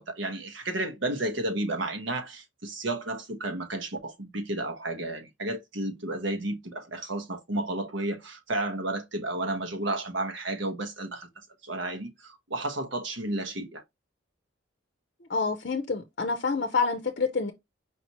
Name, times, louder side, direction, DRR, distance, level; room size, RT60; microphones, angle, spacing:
voice 1, 0.0-11.3 11.6-13.8, right 2 dB, 70° right, 1.1 m, -32 dB
voice 2, 15.3-17.5, left 4 dB, 50° left, 0.7 m, -27 dB
5.1 x 2.8 x 2.9 m
head